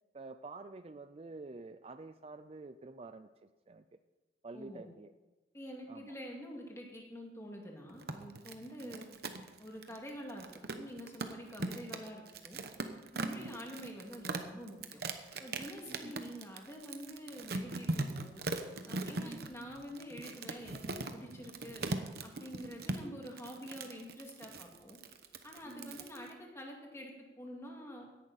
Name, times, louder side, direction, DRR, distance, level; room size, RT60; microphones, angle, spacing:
voice 1, 0.1-3.8 4.4-5.1 5.9-6.1 8.8-9.0 13.3-13.6 15.9-16.1 19.2-19.6 25.6-26.0, right 3 dB, 35° right, 10 dB, 0.4 m, -49 dB
voice 2, 4.5-4.9 5.5-9.1 9.6-12.6 13.1-15.0 15.4-18.4 18.8-21.8 22.2-25.0 25.4-28.1, equal, 15° left, 0 dB, 2.2 m, -47 dB
sound 1, 7.9-26.3, right 2 dB, 60° right, 1.0 m, -40 dB
16.5 x 11.0 x 4.2 m, 1.1 s
head